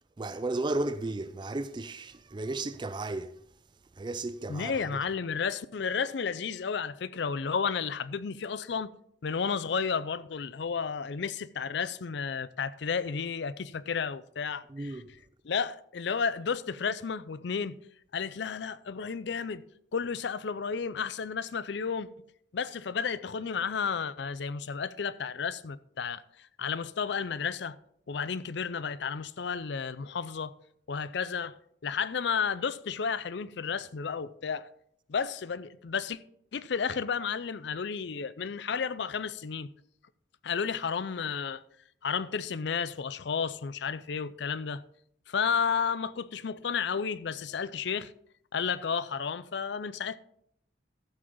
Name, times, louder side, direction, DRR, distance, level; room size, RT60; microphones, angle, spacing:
voice 1, 0.2-3.3 4.0-4.7 14.7-15.1, right 2 dB, 25° right, 0.4 m, -34 dB
voice 2, 4.5-8.9 9.2-14.9 15.4-17.8 18.1-19.6 19.9-22.1 22.5-27.8 28.1-30.5 30.9-31.6 31.8-34.7 35.1-36.2 36.5-39.7 40.4-41.6 42.0-44.8 45.3-48.1 48.5-50.2, left 6 dB, 60° left, 0.4 m, -32 dB
13.5 x 7.7 x 3.8 m
head